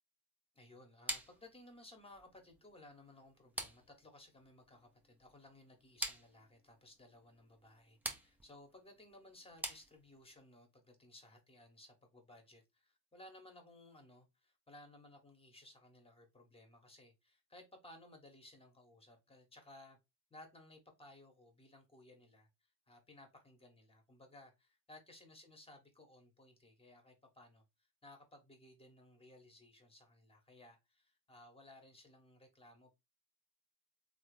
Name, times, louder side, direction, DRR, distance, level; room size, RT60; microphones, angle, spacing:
voice 1, 0.5-20.0 20.3-32.9, left 1 dB, 15° left, 1.1 m, -60 dB
sound 1, 1.1-10.4, right 1 dB, 5° right, 0.3 m, -47 dB
3.3 x 2.1 x 3.1 m
hypercardioid pair, 70°, 45 cm